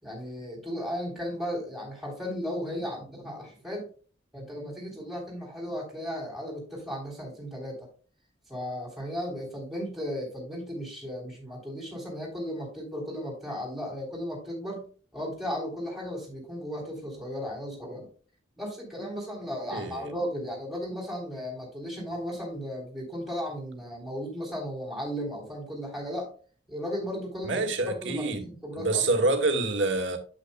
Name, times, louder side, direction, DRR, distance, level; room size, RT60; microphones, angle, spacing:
voice 1, 0.0-3.9 4.3-7.9 8.5-18.1 18.6-26.3 26.7-29.3, equal, ahead, 3.5 m, -35 dB
voice 2, 19.7-20.1 27.4-28.5 28.7-30.2, right 2 dB, 75° right, 1.6 m, -27 dB
8.7 x 8.1 x 2.2 m
head